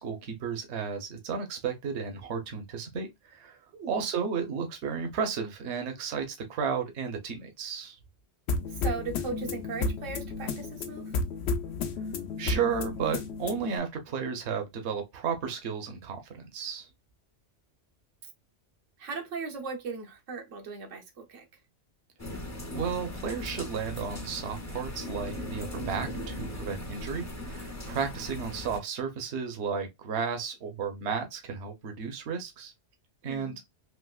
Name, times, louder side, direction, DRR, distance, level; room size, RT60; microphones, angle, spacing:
voice 1, 0.0-3.6 3.9-8.0 12.4-16.9 22.7-32.7 33.2-33.6, right 6 dB, 70° right, 1.0 m, -33 dB
sound 1, 8.5-13.8, left 3 dB, 65° left, 0.9 m, -32 dB
voice 2, 8.7-11.1 19.0-21.4 33.3-33.6, right 4 dB, 90° right, 1.2 m, -38 dB
sound 2, 22.2-28.8, left 1 dB, 20° left, 0.5 m, -38 dB
3.4 x 2.9 x 2.3 m
omnidirectional pair, 1.2 m